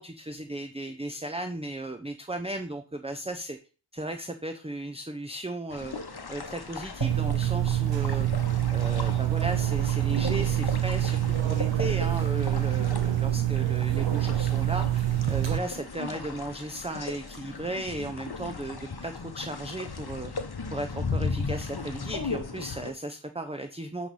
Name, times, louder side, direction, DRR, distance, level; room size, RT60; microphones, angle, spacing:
voice 1, 0.0-3.6 3.9-5.9 6.3-8.3 8.7-20.3 20.7-24.1, right 1 dB, 10° right, 6 dB, 0.7 m, -36 dB
sound 1, 5.7-22.9, left 4 dB, 50° left, 1.0 m, -37 dB
sound 2, 7.0-15.6, right 12 dB, 65° right, 0.7 m, -26 dB
9.8 x 3.3 x 5.5 m, 0.36 s
wide cardioid pair, 50°, 48 cm